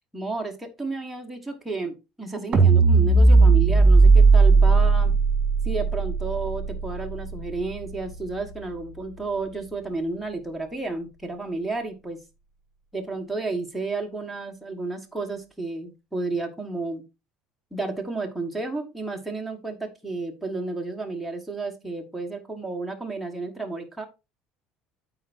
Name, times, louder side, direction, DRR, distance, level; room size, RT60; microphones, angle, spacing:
voice 1, 0.1-5.1 5.6-12.2 12.9-17.0 17.7-24.1, right 3 dB, ahead, 1 dB, 1.4 m, -32 dB
sound 1, 2.5-8.8, right 3 dB, 35° right, 1.8 m, -18 dB
13.5 x 4.5 x 2.6 m, 0.26 s
cardioid pair, 120°, 3 cm